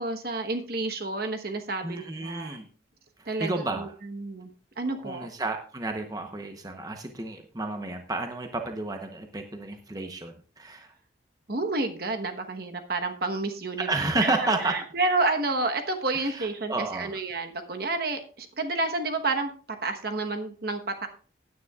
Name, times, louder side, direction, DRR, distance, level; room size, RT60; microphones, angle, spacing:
voice 1, 0.0-2.6 3.3-4.5 4.8-5.3 11.5-13.9 14.2-21.1, right 3 dB, 50° right, 6 dB, 1.1 m, -30 dB
voice 2, 1.8-2.6 3.2-3.9 4.9-10.9 13.8-14.8 16.1-17.2, right 2 dB, 20° right, 5 dB, 0.8 m, -31 dB
16.5 x 9.5 x 2.4 m, 0.40 s
head